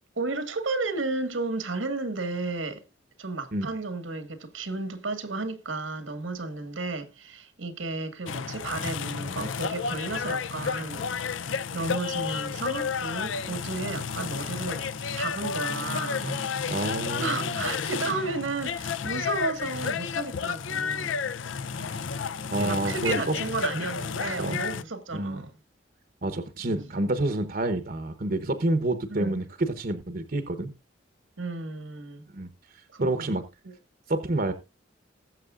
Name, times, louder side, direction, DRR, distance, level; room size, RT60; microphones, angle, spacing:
voice 1, 0.2-2.8 3.2-14.8 15.1-16.3 17.2-21.2 22.5-25.5 26.7-26.9 29.1-29.4 31.4-32.3 32.9-33.3 33.6-33.7, right 3 dB, 85° right, 1.7 m, -33 dB
sound 1, 8.3-24.8, left 6 dB, 80° left, 0.6 m, -31 dB
voice 2, 16.2-17.6 21.7-22.2 22.5-23.3 23.7-23.8 24.2-24.6 25.1-25.4 26.2-30.7 32.3-33.4 34.1-34.5, right 2 dB, 50° right, 0.9 m, -29 dB
19.5 x 7.6 x 2.4 m
head